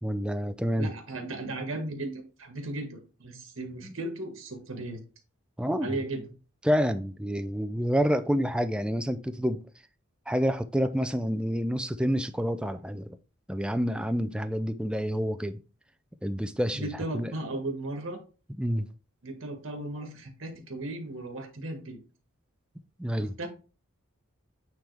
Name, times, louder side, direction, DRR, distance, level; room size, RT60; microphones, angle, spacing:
voice 1, 0.0-0.9 3.8-3.9 5.6-6.0 6.6-9.6 10.3-13.2 13.5-15.6 16.2-17.3 18.6-18.9 23.0-23.3, equal, 5° right, 0.4 m, -28 dB
voice 2, 0.8-5.0 5.8-6.3 16.7-18.2 19.2-22.0 23.2-23.5, right 2 dB, 70° right, 1.7 m, -36 dB
9.0 x 3.7 x 3.4 m
head